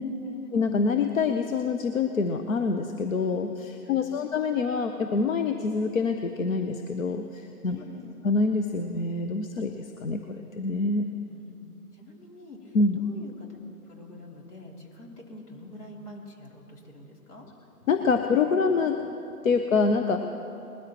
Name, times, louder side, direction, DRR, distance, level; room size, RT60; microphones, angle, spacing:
voice 1, 0.0-0.5 4.0-4.3 7.7-8.2 11.3-11.6 11.9-13.6 13.9-17.5, left 2 dB, 75° left, -1 dB, 3.2 m, -46 dB
voice 2, 0.5-7.8 8.2-11.1 12.7-13.0 17.9-19.0 19.4-20.2, left 4 dB, 55° left, 5 dB, 0.8 m, -26 dB
20.5 x 13.0 x 3.0 m, 2.8 s
figure-of-eight pair, 140°, 46 cm